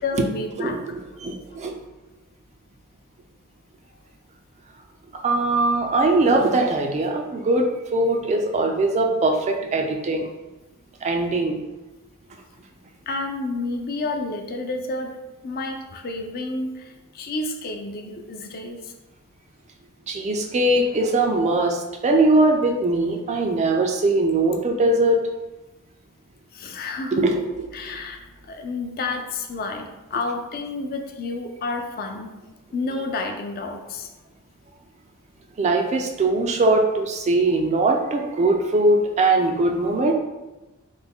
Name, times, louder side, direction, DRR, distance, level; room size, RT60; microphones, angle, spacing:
voice 1, 0.0-0.8 13.0-15.2 15.4-18.9 26.5-27.3 27.7-32.4 32.7-34.1, left 3 dB, 45° left, 4 dB, 0.4 m, -30 dB
voice 2, 0.6-1.7 5.2-10.3 11.0-11.6 20.1-25.2 27.1-27.7 35.6-40.1, right 2 dB, 30° right, 3 dB, 0.3 m, -21 dB
3.3 x 2.2 x 3.6 m, 1.1 s
head